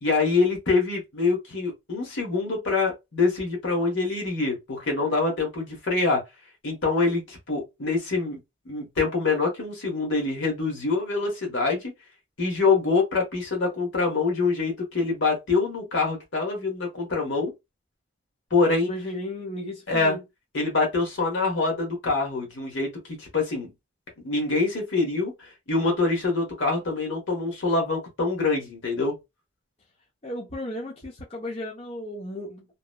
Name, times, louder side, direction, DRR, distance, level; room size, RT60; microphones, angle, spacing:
voice 1, 0.0-6.2 6.6-8.4 8.6-11.9 12.4-17.5 18.5-18.9 19.9-20.2 20.5-23.7 24.2-29.2, left 3 dB, 60° left, 1.2 m, -25 dB
voice 2, 18.8-20.2 30.2-32.7, left 1 dB, 30° left, 0.7 m, -34 dB
2.9 x 2.0 x 2.2 m
head